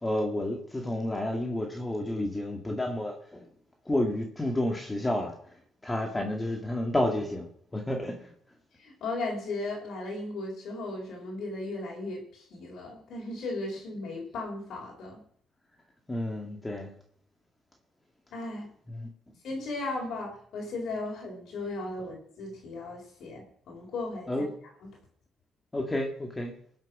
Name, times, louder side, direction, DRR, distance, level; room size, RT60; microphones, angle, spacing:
voice 1, 0.0-3.4 3.9-5.3 5.8-7.5 7.7-8.3 16.1-16.9 24.3-24.5 25.7-26.5, left 1 dB, 15° left, 2 dB, 2.0 m, -30 dB
voice 2, 8.7-15.2 18.3-18.7 19.4-24.4 24.8-25.0, left 2 dB, 70° left, 0 dB, 4.2 m, -36 dB
21.5 x 7.9 x 6.1 m, 0.62 s
cardioid pair, 90°, 0 cm